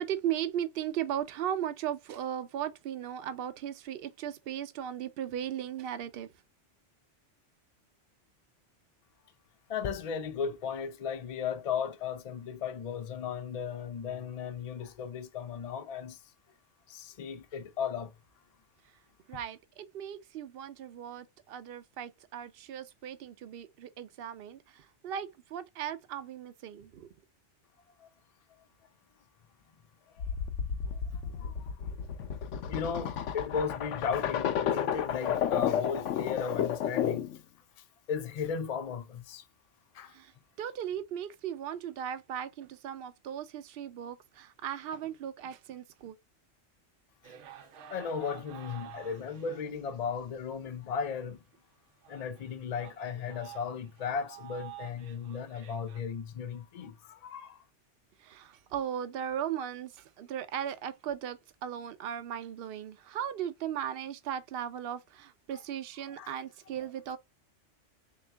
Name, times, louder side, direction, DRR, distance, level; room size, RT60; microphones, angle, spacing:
voice 1, 0.0-6.3 19.3-27.1 40.1-40.3 40.6-46.2 58.2-67.2, right 10 dB, 60° right, 0.7 m, -37 dB
voice 2, 9.7-16.2 16.9-18.1 28.0-28.1 30.8-31.5 32.7-37.3 38.1-39.4 39.9-40.1 47.9-51.4 52.1-57.6 66.2-66.3, left 6 dB, 45° left, 0.5 m, -36 dB
sound 1, 30.2-37.4, left 8 dB, 85° left, 1.0 m, -32 dB
sound 2, 47.2-50.4 50.9-51.0 51.5-51.6 52.0-56.0, right 10 dB, 85° right, 1.0 m, -50 dB
3.6 x 2.9 x 3.3 m
omnidirectional pair, 1.2 m